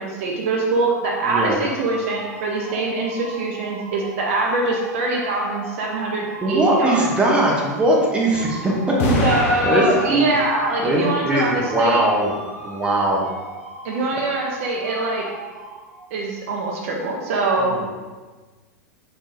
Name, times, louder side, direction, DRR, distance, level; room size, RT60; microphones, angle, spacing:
voice 1, 0.0-7.0 9.2-12.0 13.8-15.2 16.1-17.8, right 2 dB, 50° right, 0 dB, 0.7 m, -23 dB
sound 1, 1.0-16.2, right 2 dB, 80° right, 0.9 m, -37 dB
voice 2, 1.2-1.6 6.4-10.4 10.8-12.3 12.6-13.3 17.6-17.9, right 1 dB, 10° right, -3 dB, 0.9 m, -20 dB
sound 2, 9.0-10.6, left 2 dB, 50° left, 0.9 m, -24 dB
5.3 x 3.6 x 2.6 m, 1.3 s
figure-of-eight pair, 90°, 9 cm